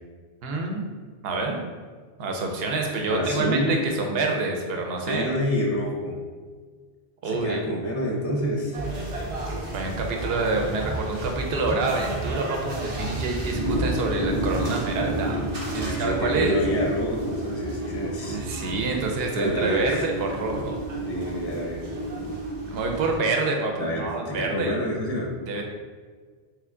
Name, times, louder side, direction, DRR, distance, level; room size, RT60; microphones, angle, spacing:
voice 1, 0.4-0.8 1.2-1.6 2.2-5.3 7.2-7.6 9.7-15.4 15.7-16.6 18.3-20.7 22.7-24.8 25.5-25.6, right 3 dB, 70° right, 2 dB, 0.8 m, -27 dB
voice 2, 3.1-3.8 5.1-6.2 7.2-8.8 15.8-18.4 19.3-20.0 21.1-21.8 23.8-25.3, equal, 20° left, -2 dB, 0.4 m, -28 dB
sound 1, 8.7-23.2, right 1 dB, 40° right, 0.6 m, -31 dB
3.3 x 3.3 x 3.6 m, 1.5 s
omnidirectional pair, 1.1 m